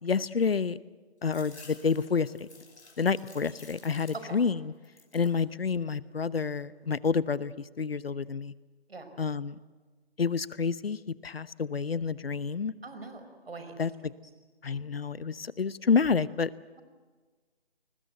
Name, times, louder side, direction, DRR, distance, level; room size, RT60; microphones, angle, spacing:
voice 1, 0.0-0.8 1.2-2.5 3.0-4.6 5.1-8.5 9.2-9.6 10.2-11.0 11.2-12.7 13.8-13.9 14.6-16.5, left 5 dB, 65° left, 18 dB, 0.9 m, -29 dB
sound 1, 1.2-4.5 4.8-5.4 5.9-6.6, left 3 dB, 85° left, 4.8 m, -53 dB
voice 2, 12.8-13.8, right 3 dB, 65° right, 8 dB, 5.2 m, -43 dB
29.5 x 20.5 x 8.0 m, 1.3 s
figure-of-eight pair, 165°, 32 cm